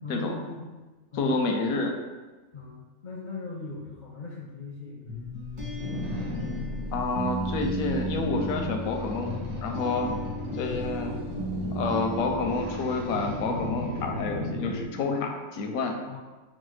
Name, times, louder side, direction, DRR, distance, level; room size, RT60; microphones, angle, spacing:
voice 1, 0.0-1.4 1.7-1.8 2.5-5.3 5.8-6.5 10.7-11.0 16.1-16.2, left 3 dB, 50° left, -3 dB, 0.6 m, -40 dB
voice 2, 1.1-1.9 6.9-10.1 10.5-11.1 11.7-16.0, left 3 dB, 90° left, 3 dB, 1.0 m, -29 dB
sound 1, 5.1-13.8, equal, 25° right, 0.9 m, -34 dB
Boat Water vehicle, 5.8-14.8, left 1 dB, 45° right, 1.2 m, -37 dB
6.3 x 2.2 x 3.2 m, 1.2 s
omnidirectional pair, 1.4 m